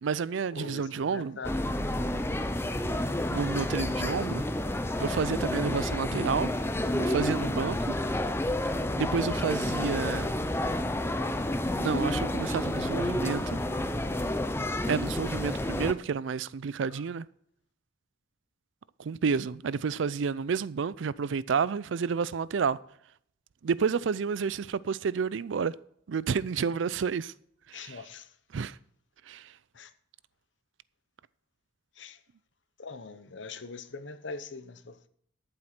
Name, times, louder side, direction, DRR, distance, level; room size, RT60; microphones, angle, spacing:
voice 1, 0.0-1.4 3.3-4.4 5.0-6.5 7.0-7.9 9.0-10.5 11.8-13.6 14.9-17.3 19.0-22.8 23.6-25.7 26.1-27.3 27.7-28.0 28.5-28.8 29.3-29.5, right 6 dB, 80° right, 0.4 m, -30 dB
voice 2, 0.5-1.6 6.1-6.5 14.1-14.4 16.9-17.0 27.7-28.3 29.7-29.9 32.0-32.2 32.8-35.1, left 4 dB, 75° left, 0.9 m, -43 dB
sound 1, 1.4-15.9, left 1 dB, 15° left, 0.6 m, -30 dB
12.5 x 7.7 x 4.4 m
head